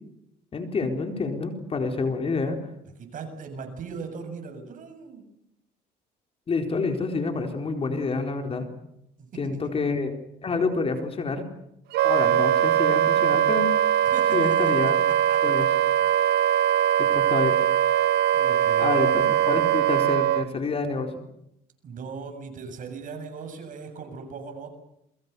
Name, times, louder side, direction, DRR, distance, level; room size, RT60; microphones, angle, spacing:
voice 1, 0.5-2.6 6.5-8.7 9.4-10.1 10.4-11.5 12.0-13.7 14.3-15.0 15.4-15.7 17.0-17.6 18.8-21.1, left 4 dB, 35° left, 5 dB, 4.3 m, -28 dB
voice 2, 3.0-5.3 9.2-9.8 14.0-14.7 15.1-15.7 18.0-18.9 21.8-24.7, right 5 dB, 50° right, 6 dB, 7.3 m, -39 dB
Wind instrument woodwind instrument, 11.9-20.4, right 10 dB, 75° right, 1.1 m, -21 dB
29.0 x 23.0 x 7.0 m, 0.79 s
cardioid pair, 110°, 17 cm